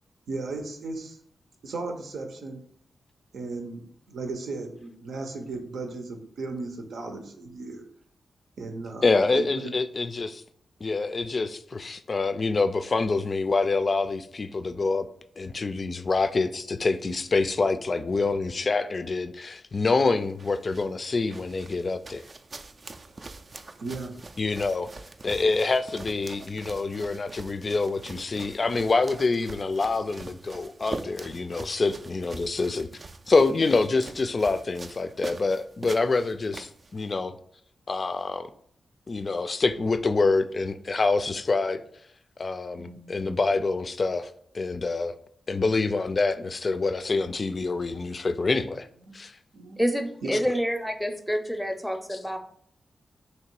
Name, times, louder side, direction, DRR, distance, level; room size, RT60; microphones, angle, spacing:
voice 1, 0.3-1.2 1.6-2.6 3.3-7.8 8.6-9.0 9.3-9.7 23.8-24.1 26.5-26.6 42.8-43.5 49.0-49.1 49.5-49.8 50.2-50.3, right 3 dB, 85° right, 0.7 m, -36 dB
voice 2, 9.0-10.4 10.8-15.1 15.4-22.2 24.4-24.9 25.2-32.9 33.3-37.4 37.9-38.5 39.1-41.8 42.4-45.2 45.5-48.9 49.1-49.3 52.1-52.2, left 3 dB, 50° left, 0.3 m, -26 dB
sound 1, 20.2-37.1, right 3 dB, 45° right, 0.3 m, -43 dB
voice 3, 49.8-52.4, equal, ahead, 0.6 m, -27 dB
3.1 x 2.9 x 4.5 m
cardioid pair, 60°, 0 cm